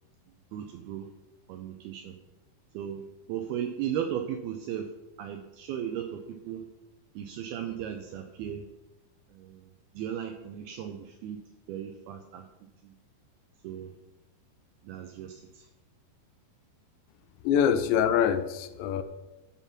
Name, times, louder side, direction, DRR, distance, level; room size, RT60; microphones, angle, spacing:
voice 1, 0.5-1.1 1.5-2.2 2.7-3.0 3.3-4.9 5.2-6.6 7.2-8.6 9.3-11.4 11.7-12.4 12.8-12.9 13.6-13.9 14.8-15.7, right 9 dB, 85° right, 6 dB, 2.2 m, -36 dB
voice 2, 17.4-19.0, left 8 dB, 80° left, 11 dB, 2.8 m, -24 dB
12.0 x 5.4 x 5.8 m, 1.0 s
omnidirectional pair, 5.1 m